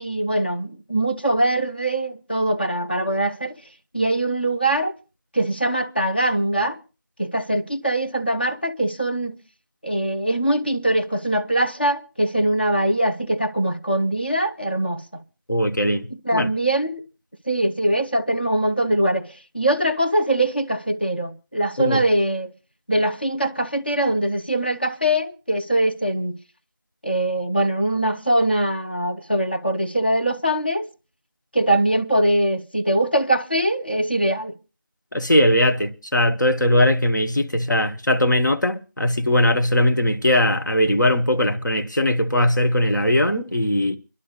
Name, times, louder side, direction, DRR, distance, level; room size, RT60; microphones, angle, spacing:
voice 1, 0.0-3.6 3.9-4.9 5.3-6.8 7.2-9.4 9.8-15.2 16.1-17.0 17.5-22.5 22.9-26.4 27.0-30.9 31.5-34.6, right 1 dB, 30° left, 0.7 m, -22 dB
voice 2, 15.5-16.1 16.3-16.5 21.8-22.0 35.1-44.0, left 1 dB, 65° left, 1.2 m, -20 dB
30.0 x 11.5 x 2.4 m
figure-of-eight pair, 180°, 11 cm